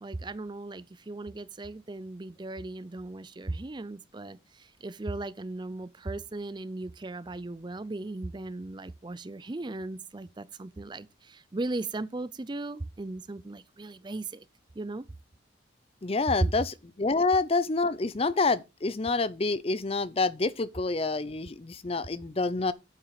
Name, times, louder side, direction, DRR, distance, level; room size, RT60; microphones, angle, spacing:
voice 1, 0.0-14.4 14.8-15.0 16.4-16.5, right 2 dB, 25° right, 0.4 m, -37 dB
voice 2, 16.0-22.7, left 3 dB, 30° left, 0.5 m, -27 dB
9.0 x 7.1 x 4.9 m
head